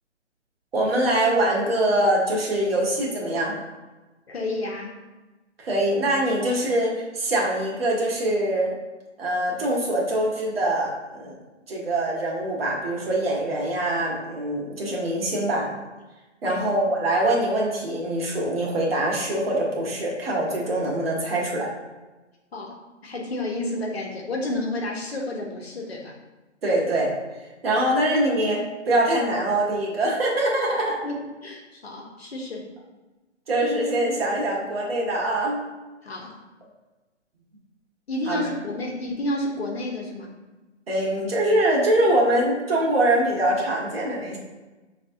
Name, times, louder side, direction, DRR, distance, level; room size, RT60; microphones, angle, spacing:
voice 1, 0.7-3.6 5.6-8.7 9.2-11.4 11.7-15.7 16.4-21.7 26.6-27.1 27.6-28.6 28.9-31.0 33.5-35.6 38.3-38.4 40.9-44.4, right 1 dB, 55° right, -3 dB, 1.5 m, -23 dB
voice 2, 4.3-5.0 16.4-16.7 22.5-26.2 31.0-32.7 36.0-36.4 38.1-40.3, left 1 dB, 60° left, -1 dB, 1.0 m, -31 dB
6.2 x 3.3 x 2.6 m, 1.2 s
figure-of-eight pair, 135°, 36 cm